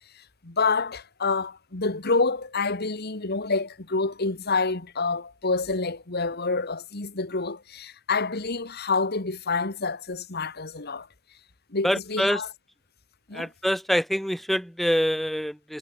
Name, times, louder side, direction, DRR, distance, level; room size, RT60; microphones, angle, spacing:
voice 1, 0.4-11.1 11.7-12.5 13.3-13.5, left 4 dB, 50° left, 1.8 m, -27 dB
voice 2, 11.8-12.4 13.3-15.8, equal, ahead, 0.6 m, -25 dB
head